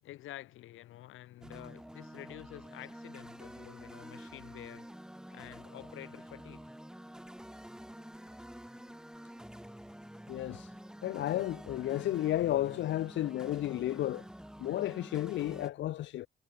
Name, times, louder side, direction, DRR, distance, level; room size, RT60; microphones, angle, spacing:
voice 1, 0.0-4.9 5.3-6.7, left 15 dB, 85° left, 7.7 m, -49 dB
sound 1, 1.4-15.7, equal, 5° right, 3.8 m, -48 dB
voice 2, 10.3-10.7 11.0-14.2 14.6-16.3, left 13 dB, 70° left, 0.6 m, -32 dB
cardioid pair, 90°, 20 cm